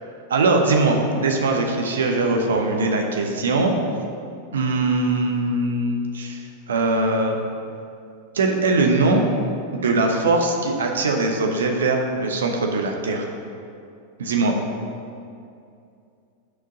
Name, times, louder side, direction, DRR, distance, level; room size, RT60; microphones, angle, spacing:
voice 1, 0.3-3.7 4.5-6.4 6.7-7.4 8.3-9.3 9.7-13.3 14.2-14.6, right 3 dB, 65° right, 3 dB, 1.0 m, -21 dB
6.6 x 5.0 x 6.7 m, 2.5 s
figure-of-eight pair, 90°, 0 cm